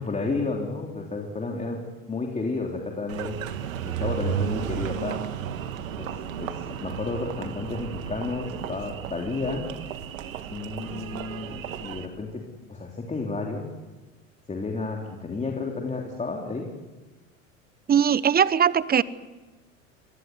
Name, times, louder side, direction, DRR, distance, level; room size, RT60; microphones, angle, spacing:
voice 1, 0.0-1.8 2.1-3.3 3.8-5.2 6.0-6.1 6.4-9.7 10.5-12.4 12.7-13.7 14.5-16.6, left 3 dB, 15° left, 0 dB, 3.4 m, -31 dB
Engine, 3.1-12.1, right 8 dB, 75° right, 2.0 m, -33 dB
voice 2, 17.9-19.0, right 8 dB, 25° right, 18 dB, 1.0 m, -20 dB
25.5 x 19.5 x 9.6 m, 1.2 s
hypercardioid pair, 85°, 40 cm